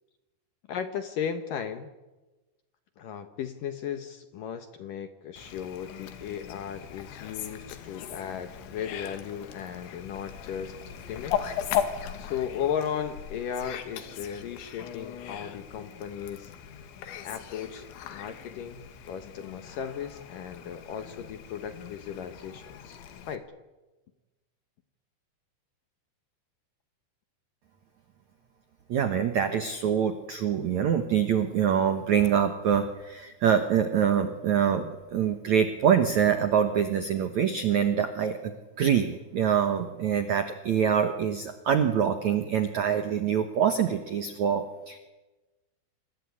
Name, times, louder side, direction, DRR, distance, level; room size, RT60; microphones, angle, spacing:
voice 1, 0.7-1.9 3.0-10.8 11.1-11.6 12.2-16.5 17.2-23.0 23.3-23.5, left 8 dB, 65° left, 8 dB, 2.2 m, -36 dB
Fowl, 5.4-23.4, left 9 dB, 80° left, 4.2 m, -38 dB
voice 2, 28.9-45.0, right 8 dB, 70° right, 8 dB, 1.7 m, -25 dB
27.0 x 20.5 x 9.7 m, 1.2 s
omnidirectional pair, 5.2 m